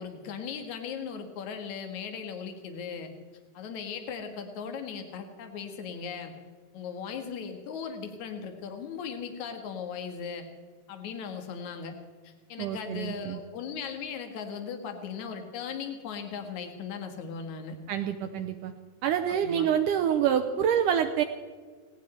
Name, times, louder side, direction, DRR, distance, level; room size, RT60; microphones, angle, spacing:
voice 1, 0.0-3.1 3.5-6.3 6.7-10.4 10.9-11.9 12.2-17.8 19.3-19.7, left 6 dB, 55° left, 6 dB, 2.8 m, -38 dB
voice 2, 12.6-13.4 17.9-18.7 19.0-21.2, right 9 dB, 75° right, 7 dB, 2.1 m, -27 dB
18.0 x 18.0 x 4.4 m, 1.5 s
omnidirectional pair, 4.2 m